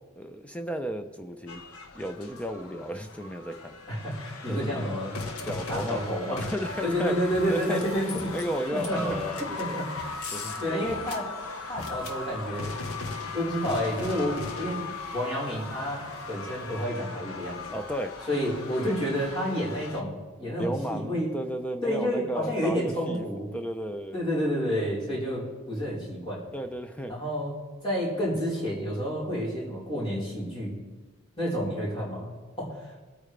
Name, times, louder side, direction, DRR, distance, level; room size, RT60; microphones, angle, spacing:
voice 1, 0.2-1.6 1.9-3.8 4.5-4.9 5.4-9.8 10.3-10.9 17.7-18.2 20.6-23.2 23.5-24.2 26.5-27.1, equal, 5° left, 7 dB, 0.6 m, -34 dB
sound 1, 1.5-20.0, left 3 dB, 80° left, 1.2 m, -38 dB
voice 2, 3.9-5.2 5.7-6.4 6.8-8.3 8.7-9.2 9.6-9.8 10.6-11.2 11.7-12.7 13.3-17.6 18.3-21.3 21.8-23.5 24.1-26.4 27.1-27.5 27.8-30.7 31.4-32.9, equal, 25° left, -6 dB, 4.4 m, -30 dB
25.0 x 8.8 x 3.4 m, 1.3 s
head